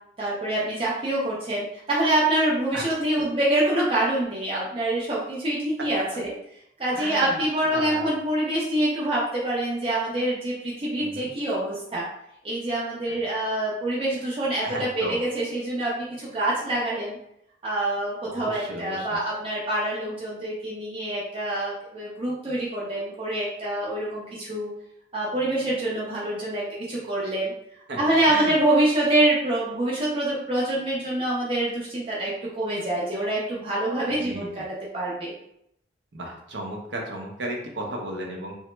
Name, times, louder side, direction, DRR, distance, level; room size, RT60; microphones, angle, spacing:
voice 1, 0.2-6.3 6.8-12.0 12.4-17.2 17.6-24.7 25.1-27.5 28.0-34.7 34.9-35.3, right 1 dB, 30° right, -6 dB, 0.5 m, -26 dB
voice 2, 6.9-7.4 7.7-8.0 11.0-11.3 13.1-13.2 14.6-15.2 18.3-19.1 27.9-28.0 28.3-28.6 34.2-34.6 36.1-38.5, right 1 dB, 70° right, 0 dB, 0.6 m, -34 dB
2.8 x 2.1 x 3.2 m, 0.75 s
head